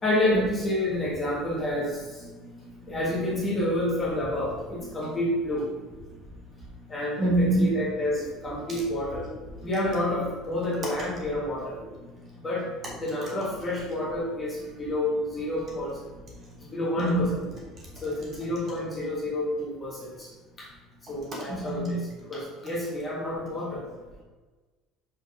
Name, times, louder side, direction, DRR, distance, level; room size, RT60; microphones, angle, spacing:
voice 1, 0.0-2.2 2.9-5.7 6.9-9.3 9.6-11.8 12.4-12.6 13.0-16.0 16.6-17.3 18.0-20.3 20.6-20.7 21.1-23.9, left 1 dB, 15° left, -5 dB, 1.7 m, -29 dB
voice 2, 2.2-2.7 5.0-5.1 7.2-7.7 9.6-9.7 12.0-12.3 17.0-17.3 21.5-21.9, right 1 dB, 30° right, -3 dB, 2.1 m, -26 dB
5.9 x 4.8 x 5.4 m, 1.3 s
cardioid pair, 175°, 0 cm